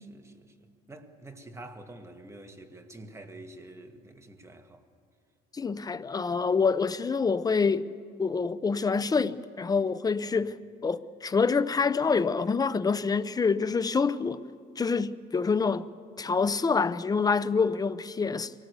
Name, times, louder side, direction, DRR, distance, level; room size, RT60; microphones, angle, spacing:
voice 1, 0.1-4.8, right 2 dB, 15° right, 1.8 m, -47 dB
voice 2, 5.5-7.9 8.2-10.6 10.8-14.4 14.8-15.9 16.2-18.5, left 5 dB, 20° left, 0.7 m, -26 dB
24.5 x 18.0 x 8.2 m
cardioid pair, 110°, 17 cm